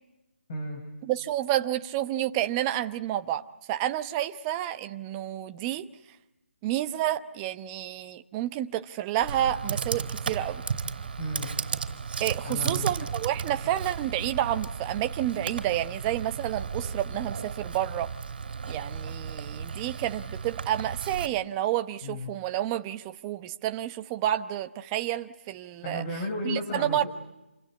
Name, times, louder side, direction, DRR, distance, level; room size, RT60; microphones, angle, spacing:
voice 1, 0.5-0.8 11.2-11.5 12.4-12.9 22.0-22.3 25.8-27.1, left 1 dB, 35° left, 1 dB, 7.0 m, -33 dB
voice 2, 1.1-5.8 6.6-10.6 12.2-18.1 18.7-26.0 26.4-27.0, right 12 dB, 20° right, 9 dB, 0.9 m, -30 dB
sound 1, 9.2-12.4 12.8-12.9 13.1-13.2, left 2 dB, 10° left, 2.4 m, -50 dB
Computer keyboard, 9.3-21.3, right 5 dB, 50° right, 3.2 m, -34 dB
28.0 x 25.5 x 8.0 m, 0.99 s
figure-of-eight pair, 155°, 6 cm